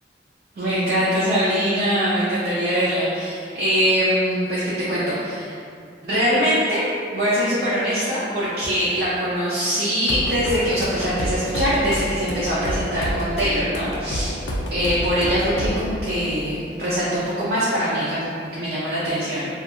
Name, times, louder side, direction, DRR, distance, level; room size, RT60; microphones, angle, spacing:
voice 1, 0.6-4.6 4.9-5.5 6.0-6.9 7.1-14.4 14.7-19.5, equal, 60° right, -9 dB, 0.5 m, -22 dB
sound 1, 10.1-15.8, equal, 85° left, 0.4 m, -28 dB
2.5 x 2.4 x 2.6 m, 2.4 s
head